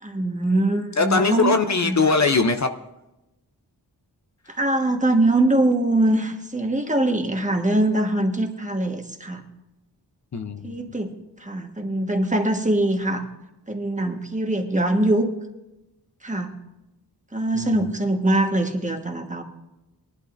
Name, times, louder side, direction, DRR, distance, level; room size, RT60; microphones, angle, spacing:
voice 1, 0.0-1.6 1.8-2.0 4.5-9.4 10.6-11.1 11.4-13.2 13.7-15.3 16.2-16.6 17.3-19.4, right 1 dB, 20° right, 4 dB, 1.4 m, -22 dB
voice 2, 1.0-2.7 10.3-10.9 17.5-17.9, left 4 dB, 45° left, 7 dB, 0.7 m, -21 dB
19.5 x 11.5 x 2.6 m, 0.96 s
wide cardioid pair, 70°, 40 cm